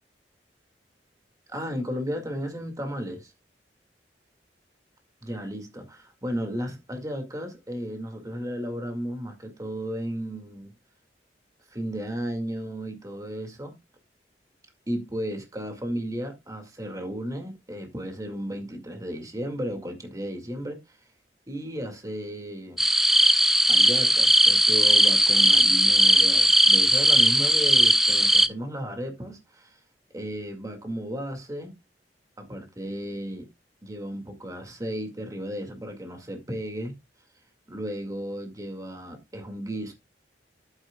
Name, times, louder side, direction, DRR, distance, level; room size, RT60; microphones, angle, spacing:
voice 1, 1.5-3.3 5.2-10.7 11.7-13.7 14.9-21.0 21.5-22.8 23.7-29.8 30.1-31.7 32.4-33.5 33.8-36.9 37.7-39.9, equal, 20° right, 2.0 m, -34 dB
sound 1, 22.8-28.5, right 1 dB, ahead, 0.4 m, -18 dB
11.0 x 8.7 x 2.3 m
head